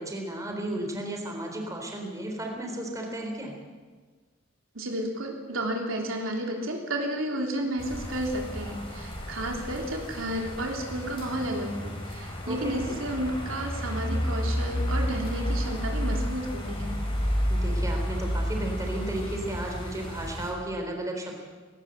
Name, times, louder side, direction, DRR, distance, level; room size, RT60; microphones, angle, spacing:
voice 1, 0.0-3.6 12.5-12.9 17.5-21.3, right 1 dB, 15° right, 1 dB, 3.6 m, -34 dB
voice 2, 4.8-17.0, right 1 dB, 85° right, 1 dB, 3.3 m, -32 dB
sound 1, 7.8-20.5, equal, 25° left, 4.5 m, -31 dB
18.0 x 18.0 x 7.9 m, 1.5 s
head